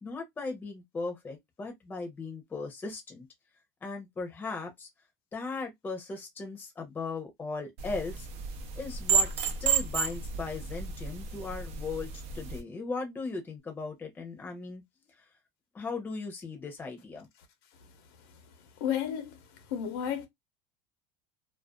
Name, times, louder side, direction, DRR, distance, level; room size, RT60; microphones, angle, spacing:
voice 1, 0.0-3.3 3.8-4.9 5.3-8.3 8.8-12.1 12.3-14.8 15.7-17.3, left 3 dB, 15° left, 0.7 m, -37 dB
sound 1, 7.8-12.6, right 6 dB, 55° right, 0.6 m, -31 dB
voice 2, 18.8-19.3 19.7-20.3, left 9 dB, 80° left, 0.8 m, -31 dB
2.5 x 2.3 x 2.2 m
supercardioid pair, 145°, 12 cm